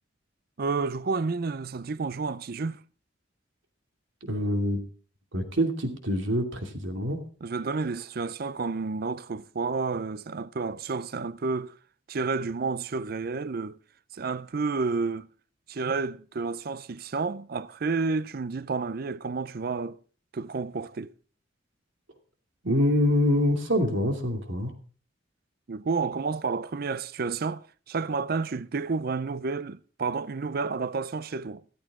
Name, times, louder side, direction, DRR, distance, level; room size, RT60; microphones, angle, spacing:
voice 1, 0.6-2.8 7.4-11.7 12.1-13.8 14.1-15.3 15.7-20.0 20.3-21.1 25.7-31.6, right 4 dB, 50° right, 0.5 m, -30 dB
voice 2, 4.2-4.8 5.3-7.2 22.6-24.7, left 1 dB, 75° right, 2.6 m, -25 dB
15.0 x 14.0 x 3.7 m
head